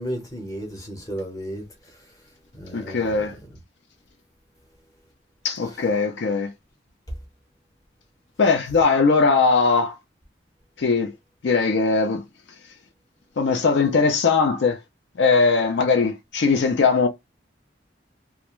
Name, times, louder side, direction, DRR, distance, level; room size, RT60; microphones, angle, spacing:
voice 1, 0.0-1.6 2.6-3.2, equal, 20° left, 0.8 m, -33 dB
voice 2, 2.7-3.4 5.4-6.5 8.4-10.0 10.8-11.1 11.4-12.2 13.4-14.8 15.2-17.1, left 4 dB, 65° left, 0.4 m, -20 dB
2.4 x 2.1 x 2.9 m
head